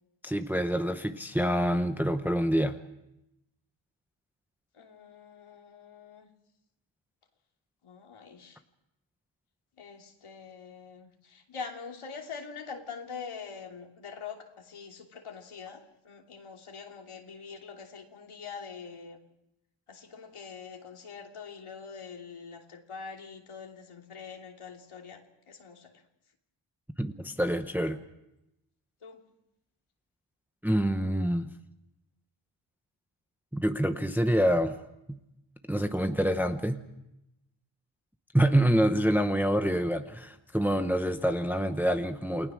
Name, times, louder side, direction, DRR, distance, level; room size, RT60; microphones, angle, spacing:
voice 1, 0.2-2.8 27.0-28.0 30.6-31.5 33.5-34.8 35.1-35.2 35.7-36.8 38.3-42.5, equal, 5° right, 7 dB, 0.8 m, -26 dB
voice 2, 4.7-6.3 7.8-8.6 9.8-19.2 19.9-26.0 29.0-29.2, left 5 dB, 85° left, 1 dB, 3.1 m, -44 dB
28.5 x 19.5 x 6.3 m, 0.88 s
wide cardioid pair, 145°, 49 cm